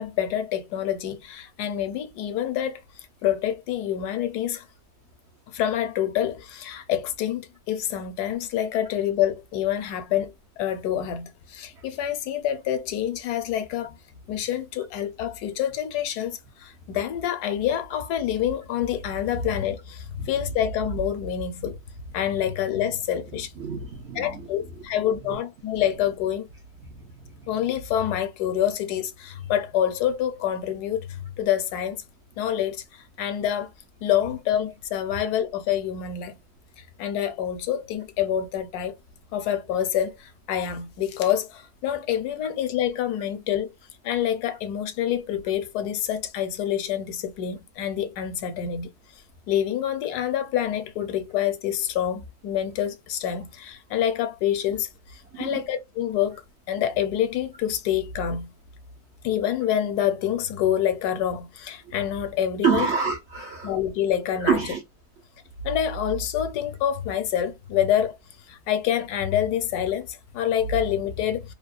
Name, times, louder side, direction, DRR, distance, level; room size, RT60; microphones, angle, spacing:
voice 1, 0.0-4.6 5.5-14.0 14.3-21.8 22.1-23.5 24.1-26.5 27.5-32.0 32.4-33.7 34.0-36.3 36.8-39.0 39.3-43.7 44.0-48.9 49.5-58.5 59.2-62.9 63.6-64.6 65.6-68.2 68.5-71.5, left 10 dB, 75° left, 1.1 m, -27 dB
voice 2, 23.6-24.5 25.0-25.4 55.3-55.6 62.6-63.7 64.4-64.8, right 6 dB, 70° right, 0.6 m, -26 dB
2.8 x 2.0 x 2.3 m
omnidirectional pair, 1.7 m